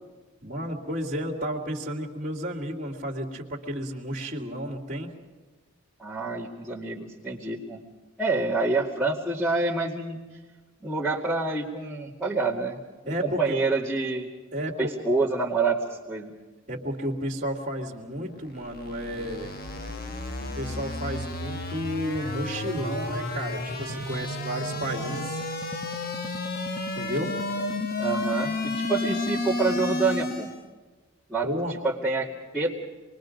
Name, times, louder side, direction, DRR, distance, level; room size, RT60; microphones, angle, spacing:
voice 1, 0.4-5.1 13.1-13.6 14.5-14.9 16.7-19.5 20.5-25.4 27.0-27.3 31.4-31.7, equal, 40° right, -5 dB, 2.4 m, -32 dB
voice 2, 6.0-7.8 8.2-10.4 10.8-12.8 13.0-14.3 14.8-16.3 28.0-30.5 31.3-32.8, right 3 dB, ahead, -4 dB, 2.3 m, -27 dB
sound 1, 18.4-30.7, left 2 dB, 40° left, 1.3 m, -31 dB
27.0 x 22.0 x 5.2 m, 1.3 s
head